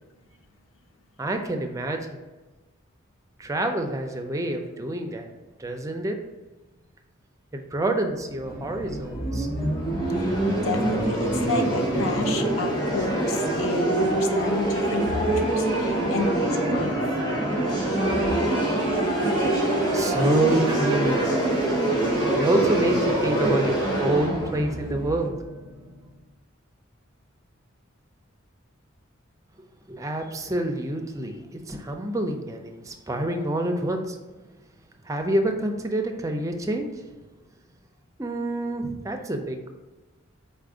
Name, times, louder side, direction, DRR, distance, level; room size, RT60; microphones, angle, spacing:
voice 1, 1.2-2.0 3.4-5.3 5.6-6.2 7.5-9.5 19.2-21.3 22.4-25.3 29.9-34.2 35.0-36.9 38.2-39.7, right 1 dB, 15° right, 4 dB, 0.4 m, -27 dB
sound 1, 8.2-26.0, right 1 dB, 20° left, 1.1 m, -25 dB
sound 2, 8.4-25.3, equal, 45° left, 0.7 m, -41 dB
voice 2, 10.2-17.0, left 3 dB, 80° left, 5 dB, 0.6 m, -31 dB
4.2 x 2.5 x 4.7 m, 1.2 s
head